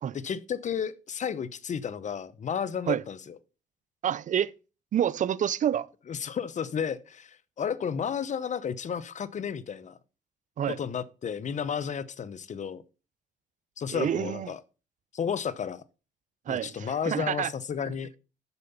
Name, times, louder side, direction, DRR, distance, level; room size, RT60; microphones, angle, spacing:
voice 1, 0.1-3.4 6.1-10.0 10.7-12.8 13.8-14.6 15.1-15.8 16.5-18.1, left 7 dB, 55° left, 0.8 m, -32 dB
voice 2, 4.0-4.5 4.9-5.9 10.6-10.8 13.9-14.5 16.5-17.5, right 9 dB, 60° right, 0.5 m, -28 dB
8.2 x 6.7 x 5.4 m
supercardioid pair, 60°, 15 cm